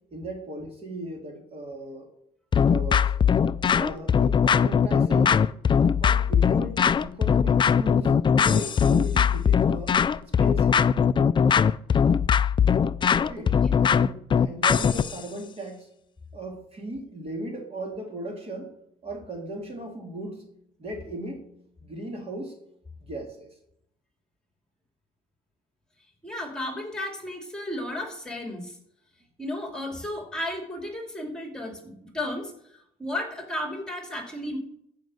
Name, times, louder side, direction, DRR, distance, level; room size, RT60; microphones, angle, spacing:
voice 1, 0.1-2.1 2.7-3.1 3.7-5.4 5.8-10.9 13.1-13.6 13.8-15.9 16.3-18.7 19.0-20.5 20.8-21.5 21.8-22.5 23.0-23.5, right 1 dB, 35° right, 2 dB, 3.0 m, -37 dB
sound 1, 2.5-15.2, left 7 dB, 30° left, 0.4 m, -21 dB
voice 2, 13.4-13.7 26.2-28.8 29.4-34.6, left 1 dB, 5° left, 2 dB, 2.8 m, -34 dB
14.5 x 5.3 x 6.4 m, 0.71 s
cardioid pair, 110°, 17 cm